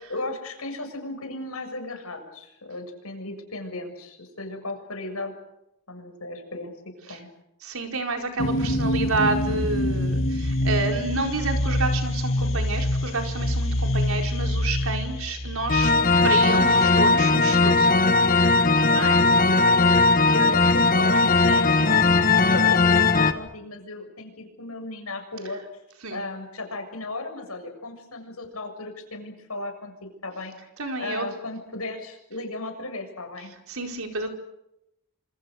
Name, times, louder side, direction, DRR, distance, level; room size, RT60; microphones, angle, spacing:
voice 1, 0.1-5.3 5.9-6.7 7.1-7.3 18.9-22.2 22.5-25.6 26.1-29.9 30.2-30.5 31.0-33.6, left 2 dB, 80° left, 5 dB, 7.1 m, -35 dB
voice 2, 7.6-15.9 16.2-17.9 18.9-19.2 26.0-26.2 30.8-31.3 33.7-34.3, right 3 dB, 75° right, 3 dB, 4.5 m, -29 dB
sound 1, 8.4-17.0, left 1 dB, 60° left, 2.7 m, -26 dB
sound 2, 15.7-23.3, left 3 dB, 40° left, 1.5 m, -18 dB
27.0 x 27.0 x 6.5 m, 0.87 s
head